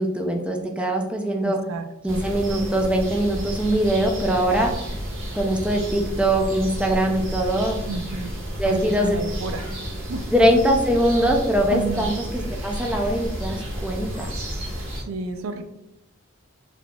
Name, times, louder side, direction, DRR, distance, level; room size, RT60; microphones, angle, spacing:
voice 1, 0.0-1.6 2.0-4.7 5.3-7.8 8.6-9.2 10.3-14.3, right 1 dB, 5° right, 2 dB, 0.4 m, -22 dB
voice 2, 1.4-2.2 7.9-8.4 8.7-9.7 10.1-10.2 11.7-12.1 15.0-15.6, right 3 dB, 90° right, 7 dB, 0.4 m, -31 dB
sound 1, 2.1-15.0, equal, 70° right, 1.5 m, -31 dB
3.9 x 2.9 x 2.2 m, 0.88 s
head